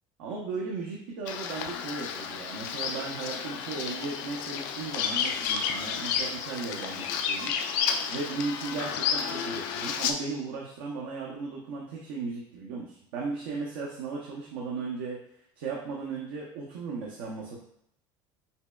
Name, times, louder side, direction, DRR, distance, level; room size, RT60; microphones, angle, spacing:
voice 1, 0.2-7.5 8.1-15.2 15.6-17.6, right 4 dB, 80° right, -3 dB, 0.7 m, -36 dB
Bird vocalization bird call bird song, 1.3-10.1, left 7 dB, 80° left, 0.4 m, -31 dB
5.4 x 2.1 x 2.3 m, 0.73 s
supercardioid pair, 135°, 11 cm